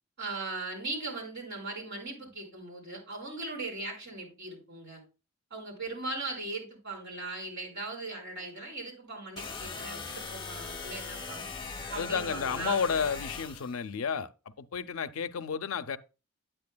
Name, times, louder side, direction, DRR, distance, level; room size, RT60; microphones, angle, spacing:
voice 1, 0.2-5.0 5.5-11.4 11.9-12.8, right 2 dB, 55° right, 4.7 m, -39 dB
sound 1, 9.4-13.8, left 4 dB, 20° left, 0.9 m, -40 dB
voice 2, 12.0-14.3 14.6-16.0, left 6 dB, 75° left, 0.5 m, -31 dB
9.4 x 8.9 x 2.2 m
head